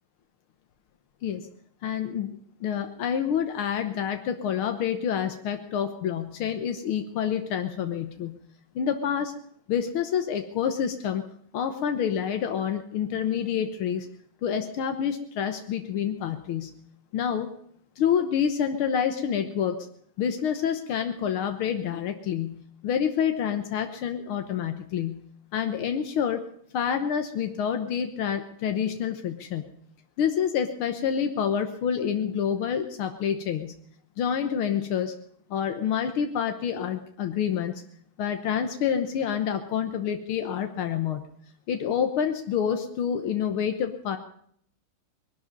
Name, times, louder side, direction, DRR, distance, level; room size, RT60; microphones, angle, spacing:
voice 1, 1.8-8.4 8.8-9.3 9.7-11.2 11.5-14.1 14.4-16.7 17.1-17.5 18.0-19.8 20.2-25.2 25.5-26.4 26.7-29.7 30.2-33.7 34.2-35.1 35.5-37.8 38.2-41.2 41.7-44.2, left 8 dB, 85° left, 7 dB, 1.9 m, -28 dB
20.5 x 12.5 x 5.3 m, 0.65 s
omnidirectional pair, 2.3 m